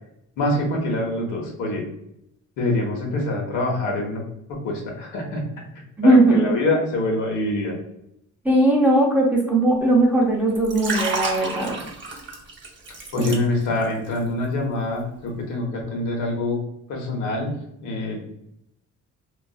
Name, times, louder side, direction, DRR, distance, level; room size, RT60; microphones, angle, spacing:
voice 1, 0.4-1.8 2.6-4.2 4.5-5.4 6.0-7.8 13.1-16.6 16.9-17.5 17.8-18.2, left 2 dB, 80° left, 0 dB, 0.8 m, -25 dB
voice 2, 6.0-6.4 8.4-11.8 13.2-13.3, right 1 dB, 5° right, -3 dB, 0.7 m, -18 dB
Liquid, 10.5-13.9 14.2-14.4, right 3 dB, 40° right, 0.7 m, -30 dB
2.5 x 2.4 x 2.3 m, 0.78 s
cardioid pair, 90°, 30 cm